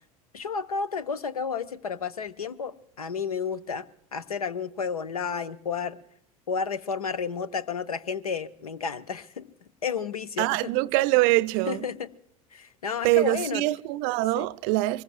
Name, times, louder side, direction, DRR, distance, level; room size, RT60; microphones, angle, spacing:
voice 1, 0.3-3.8 4.1-6.0 6.5-9.5 9.8-10.5 11.7-12.1 12.5-13.6 14.3-14.5, left 6 dB, 80° left, 0.7 m, -31 dB
voice 2, 10.4-11.9 13.0-15.0, right 20 dB, 50° right, 0.5 m, -24 dB
24.0 x 20.5 x 2.4 m
figure-of-eight pair, 70°, 18 cm